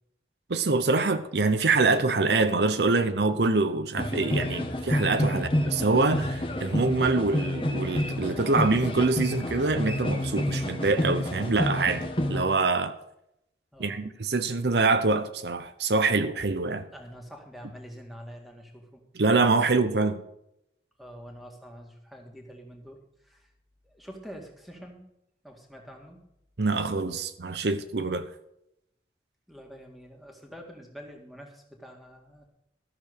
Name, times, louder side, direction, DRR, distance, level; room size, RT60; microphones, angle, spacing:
voice 1, 0.5-12.9 13.8-16.9 19.1-20.2 26.6-28.3, right 3 dB, 75° right, 0.8 m, -25 dB
sound 1, 3.9-12.4, left 1 dB, 30° left, 1.4 m, -29 dB
voice 2, 13.7-14.0 16.9-19.0 21.0-23.5 23.8-25.0 25.4-26.2 29.5-32.5, equal, ahead, 1.9 m, -46 dB
13.5 x 6.9 x 6.7 m
head